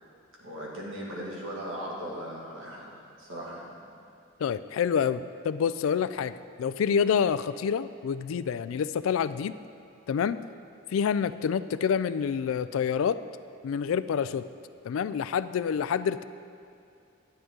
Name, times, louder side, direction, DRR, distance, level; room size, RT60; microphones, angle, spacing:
voice 1, 0.4-3.7, equal, 85° right, -4 dB, 2.1 m, -38 dB
voice 2, 4.4-9.5 10.1-10.4 10.9-13.2 13.6-14.5 14.8-16.2, left 7 dB, 90° left, 14 dB, 0.3 m, -27 dB
10.5 x 9.4 x 3.8 m, 2.5 s
head